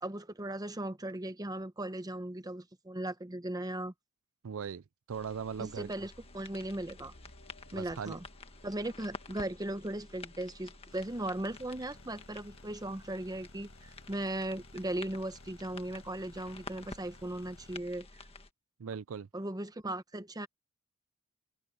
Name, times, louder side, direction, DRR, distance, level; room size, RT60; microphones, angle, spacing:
voice 1, 0.0-3.9 5.6-7.1 7.7-8.2 8.6-18.2 19.3-20.5, right 1 dB, 20° right, 1.0 m, -38 dB
voice 2, 4.4-4.8 5.1-5.9 7.7-8.2 18.8-19.3, right 6 dB, 70° right, 0.5 m, -39 dB
sound 1, 5.1-18.5, left 3 dB, 30° left, 1.6 m, -51 dB
sound 2, 6.1-12.4, left 1 dB, 75° left, 3.2 m, -62 dB
sound 3, 10.9-17.8, left 2 dB, 90° left, 6.4 m, -59 dB
open air
head